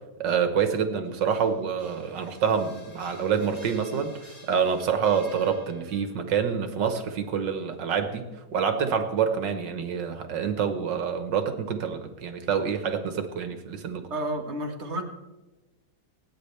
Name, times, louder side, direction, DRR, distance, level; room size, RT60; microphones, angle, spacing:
voice 1, 0.2-14.0, right 7 dB, 75° right, 7 dB, 2.0 m, -27 dB
sound 1, 1.0-6.2, left 1 dB, 80° left, 4.4 m, -52 dB
voice 2, 14.1-15.0, right 1 dB, 40° right, 2 dB, 1.9 m, -30 dB
27.5 x 9.4 x 3.4 m, 1.1 s
omnidirectional pair, 2.0 m